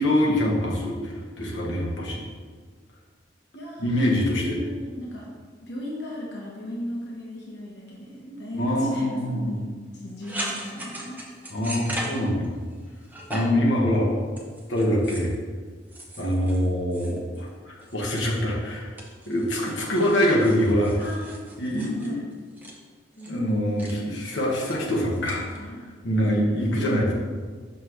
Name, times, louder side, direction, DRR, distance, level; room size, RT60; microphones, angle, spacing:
voice 1, 0.0-2.2 3.8-4.6 8.5-9.5 11.5-12.5 13.3-14.1 14.7-15.3 16.2-18.9 19.3-20.9 21.6-22.1 23.2-25.6 26.0-27.1, equal, 85° left, -3 dB, 1.3 m, -24 dB
voice 2, 3.5-4.1 4.4-5.3 5.6-11.3 19.3-19.5 21.0-21.5 21.8-22.2 23.3-23.8 24.6-24.7 25.2-25.8 26.2-26.4 26.7-26.9, left 1 dB, 65° left, -4 dB, 1.1 m, -36 dB
sound 1, 10.2-12.7 13.0-13.7 14.3-15.3 15.9-17.5 17.8-18.6 19.0-22.8 23.2-23.4 23.8-23.9 24.2-24.8 25.3-25.6, right 1 dB, 10° right, 0.8 m, -38 dB
6.3 x 6.0 x 3.1 m, 1.5 s
head